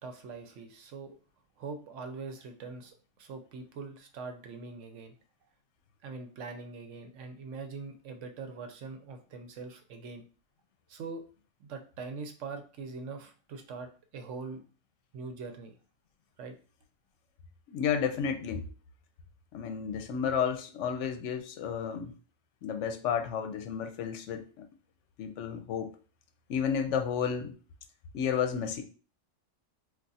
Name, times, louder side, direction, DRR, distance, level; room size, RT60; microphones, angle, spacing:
voice 1, 0.0-1.2 1.6-5.1 6.0-10.2 10.9-11.2 11.6-14.6 15.1-15.8 16.4-16.5, right 4 dB, 80° right, 1.0 m, -42 dB
voice 2, 17.7-18.7 19.5-22.1 22.6-24.7 25.2-26.0 26.5-27.5 28.1-28.8, left 7 dB, 75° left, 0.9 m, -32 dB
2.5 x 2.4 x 4.0 m
omnidirectional pair, 1.3 m